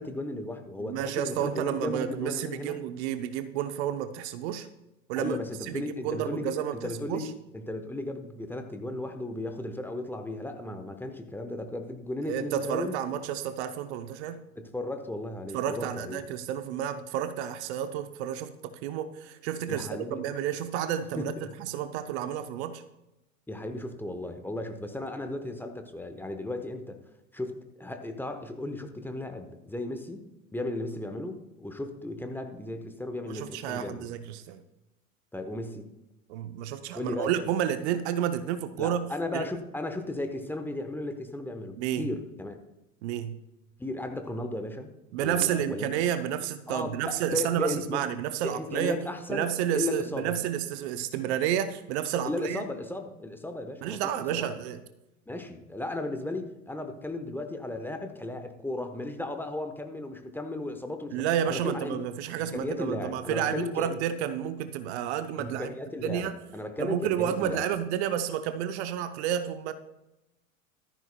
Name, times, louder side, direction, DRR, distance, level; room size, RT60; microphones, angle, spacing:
voice 1, 0.0-2.8 5.2-6.5 6.8-12.9 14.6-16.2 19.7-20.2 21.2-21.5 23.5-27.0 27.3-30.2 30.5-34.1 35.3-35.9 36.9-37.5 38.8-42.6 43.8-44.9 45.2-45.9 46.7-48.0 48.4-50.3 52.2-54.6 55.3-62.0 62.4-64.0 65.4-67.7, left 2 dB, 5° left, 6 dB, 1.0 m, -35 dB
voice 2, 0.8-4.7 5.1-5.4 5.7-7.3 12.2-14.4 15.5-21.3 21.6-22.8 33.3-34.6 36.3-39.5 41.8-42.1 43.0-43.4 45.1-52.7 53.8-54.8 61.1-65.7 66.0-66.3 66.8-69.7, right 10 dB, 50° right, 10 dB, 0.8 m, -31 dB
15.0 x 13.5 x 2.3 m, 0.94 s
figure-of-eight pair, 85°, 41 cm